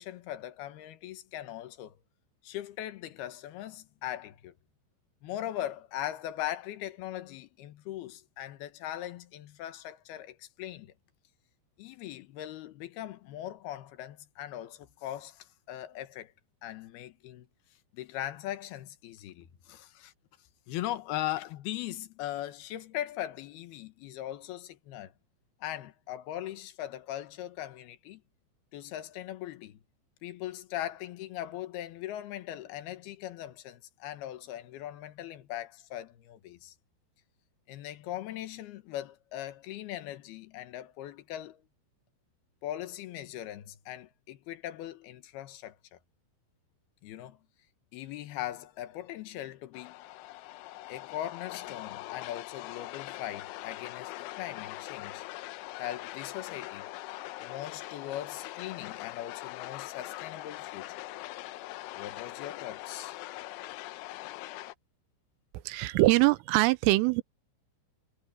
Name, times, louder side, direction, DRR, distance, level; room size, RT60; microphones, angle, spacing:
voice 1, 0.0-1.9 2.4-4.5 5.2-10.9 11.8-16.3 16.6-17.5 17.9-20.1 20.7-25.1 25.6-28.2 28.7-29.8 30.2-36.7 37.7-41.6 42.6-46.0 47.0-47.4 47.9-50.0 50.9-55.3 55.8-56.8 57.4-61.0 61.9-63.2, left 13 dB, 65° left, 2.7 m, -40 dB
sound 1, 49.7-64.7, left 17 dB, 85° left, 3.1 m, -42 dB
voice 2, 65.7-67.2, right 20 dB, 90° right, 3.4 m, -23 dB
omnidirectional pair, 5.6 m